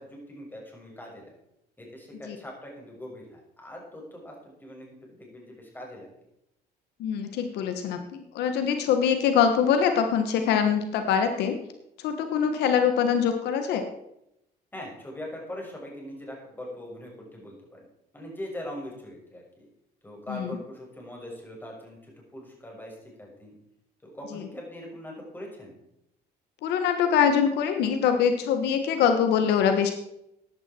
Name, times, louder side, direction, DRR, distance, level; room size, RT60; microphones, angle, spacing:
voice 1, 0.0-1.3 1.8-6.1 14.7-17.9 18.1-19.6 20.0-23.5 24.0-25.8, left 1 dB, 10° left, -1 dB, 6.2 m, -41 dB
voice 2, 7.0-11.5 12.0-13.8 20.3-20.5 26.6-29.9, left 7 dB, 80° left, 7 dB, 1.5 m, -23 dB
15.0 x 10.5 x 4.5 m, 0.81 s
cardioid pair, 110°, 17 cm